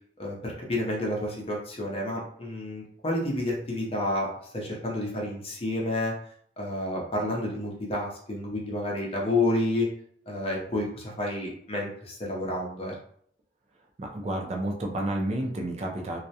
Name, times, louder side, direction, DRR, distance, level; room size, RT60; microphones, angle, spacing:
voice 1, 0.2-6.1 6.6-9.9 10.3-12.9, left 1 dB, 35° left, -2 dB, 0.6 m, -30 dB
voice 2, 14.0-16.3, right 1 dB, 35° right, 1 dB, 0.4 m, -30 dB
2.3 x 2.1 x 2.7 m, 0.63 s
head